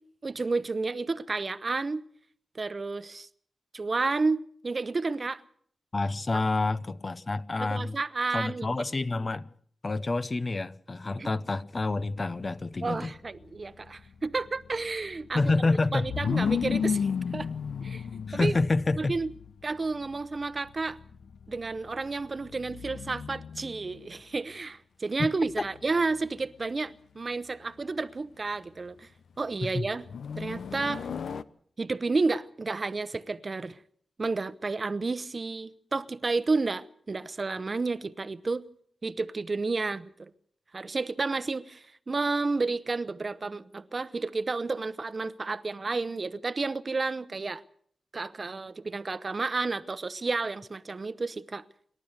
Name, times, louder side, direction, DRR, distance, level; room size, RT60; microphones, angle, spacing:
voice 1, 0.2-2.0 2.5-3.3 3.7-5.4 6.3-6.4 7.6-8.7 11.2-11.3 12.8-15.4 15.9-17.5 17.8-18.0 18.3-18.6 19.0-19.3 19.6-21.0 21.5-29.1 29.4-30.0 30.4-31.1 31.8-33.8 34.2-38.6 39.0-40.3 40.7-47.6 48.1-51.6, right 3 dB, 35° right, 0.9 m, -31 dB
voice 2, 5.9-8.0 8.3-9.5 9.8-13.1 15.3-16.1 18.3-19.2 25.2-25.3 25.6-25.7 29.6-29.9, left 3 dB, 35° left, 0.7 m, -28 dB
sound 1, 12.0-24.2 25.4-26.2 30.0-31.4, left 6 dB, 80° left, 0.8 m, -34 dB
27.5 x 12.0 x 8.1 m
wide cardioid pair, 105°, 0 cm